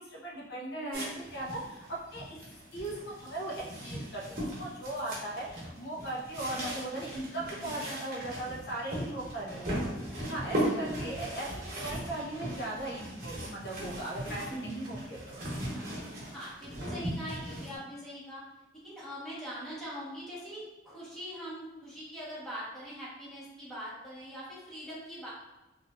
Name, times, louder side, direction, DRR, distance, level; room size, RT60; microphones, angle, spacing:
voice 1, 0.0-2.4 2.7-9.9 10.3-15.4, right 1 dB, 60° left, -3 dB, 0.7 m, -38 dB
sound 1, 0.9-17.8, equal, 55° right, 1.1 m, -38 dB
voice 2, 7.4-8.0 10.6-10.8 14.5-14.8 15.7-15.9 16.3-18.4 18.8-25.3, equal, 5° left, -9 dB, 1.2 m, -42 dB
4.2 x 2.5 x 2.5 m, 1.0 s
head